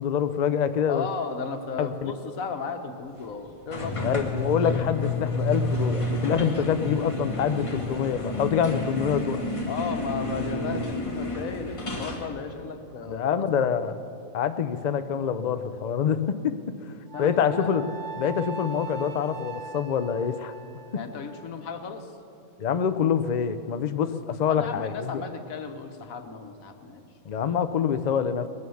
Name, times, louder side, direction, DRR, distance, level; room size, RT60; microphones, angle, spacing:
voice 1, 0.0-1.1 1.8-2.1 4.0-9.5 13.1-14.0 14.3-16.5 16.8-17.8 18.2-20.5 20.9-21.0 22.6-25.2 27.3-28.5, left 7 dB, 50° left, 10 dB, 0.5 m, -26 dB
voice 2, 0.9-4.2 9.7-13.4 17.1-17.7 20.9-22.1 24.5-27.1, left 5 dB, 90° left, 7 dB, 1.5 m, -35 dB
sound 1, 3.7-12.3, left 2 dB, 25° left, 1.6 m, -30 dB
Wind instrument woodwind instrument, 17.1-21.5, right 3 dB, 35° right, 1.0 m, -40 dB
20.0 x 9.5 x 7.1 m, 2.7 s
omnidirectional pair, 1.4 m